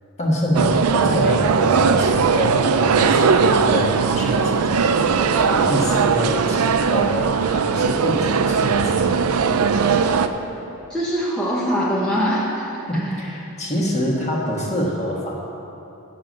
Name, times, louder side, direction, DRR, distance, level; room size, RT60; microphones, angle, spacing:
voice 1, 0.2-9.2 12.9-15.3, equal, 30° left, -3 dB, 1.5 m, -26 dB
sound 1, 0.5-10.3, right 5 dB, 75° right, 0.4 m, -19 dB
voice 2, 10.9-13.1, equal, 5° left, -7 dB, 0.9 m, -23 dB
9.1 x 6.7 x 6.4 m, 2.9 s
head